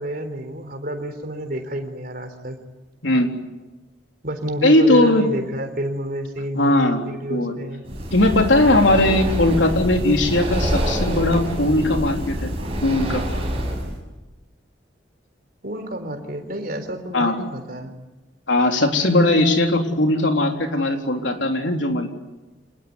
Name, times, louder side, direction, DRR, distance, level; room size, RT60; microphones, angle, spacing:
voice 1, 0.0-2.6 4.2-7.9 15.6-17.9, right 1 dB, 50° right, 7 dB, 4.0 m, -30 dB
voice 2, 4.6-5.2 6.5-7.5 8.1-12.5 12.8-13.2 17.1-17.4 18.5-22.1, left 1 dB, 80° left, 3 dB, 3.8 m, -19 dB
Breathing, 7.8-14.0, equal, 30° right, 7.0 m, -26 dB
27.5 x 20.0 x 9.7 m, 1.1 s
head